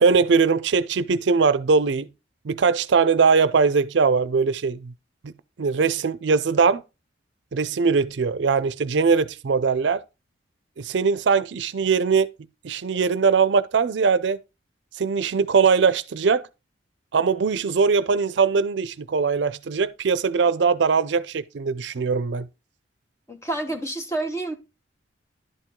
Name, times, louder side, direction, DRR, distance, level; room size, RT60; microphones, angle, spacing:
voice 1, 0.0-2.1 2.4-4.9 5.2-5.3 5.6-6.8 7.5-10.0 10.8-12.3 12.6-14.4 15.0-16.4 17.1-22.5, right 5 dB, 70° right, 0.5 m, -21 dB
voice 2, 23.3-24.5, right 2 dB, 15° left, 1.1 m, -28 dB
11.0 x 4.5 x 3.7 m
head